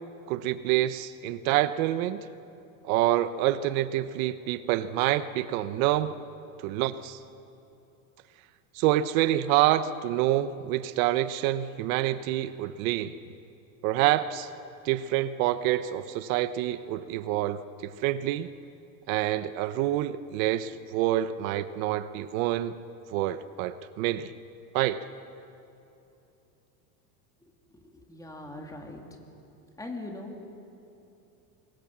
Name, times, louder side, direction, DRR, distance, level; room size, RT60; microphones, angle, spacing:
voice 1, 0.3-2.2 2.9-6.2 6.6-7.2 8.7-13.2 13.8-14.5 14.8-18.5 19.1-22.8 23.1-24.3 24.7-25.0, right 13 dB, 70° right, 13 dB, 1.0 m, -27 dB
voice 2, 27.7-29.0 29.8-30.6, left 2 dB, 10° left, 2 dB, 2.8 m, -41 dB
27.0 x 22.0 x 7.4 m, 2.8 s
cardioid pair, 150°, 42 cm